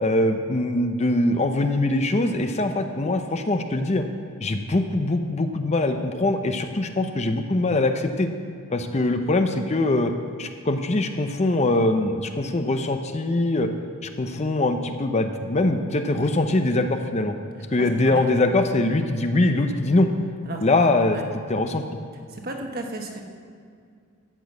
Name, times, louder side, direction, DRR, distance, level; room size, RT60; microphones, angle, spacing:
voice 1, 0.0-4.1 4.4-8.3 8.7-10.1 10.4-13.7 14.2-17.3 17.7-20.1 20.6-21.2 21.5-21.8, left 2 dB, 30° left, 7 dB, 0.6 m, -22 dB
voice 2, 17.8-18.3 20.4-20.6 21.1-21.3 22.3-23.2, right 2 dB, 45° right, 2 dB, 1.3 m, -34 dB
13.5 x 6.2 x 8.1 m, 2.2 s
head